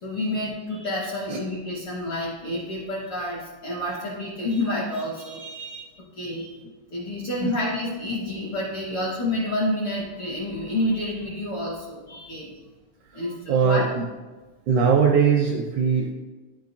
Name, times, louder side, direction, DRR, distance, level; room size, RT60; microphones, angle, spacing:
voice 1, 0.0-5.9 6.1-6.5 6.9-12.5 13.1-13.8, left 1 dB, 65° left, -5 dB, 1.3 m, -29 dB
voice 2, 13.5-14.1 14.7-16.1, right 6 dB, 80° right, 1 dB, 1.7 m, -21 dB
10.0 x 5.5 x 2.6 m, 1.3 s
omnidirectional pair, 3.9 m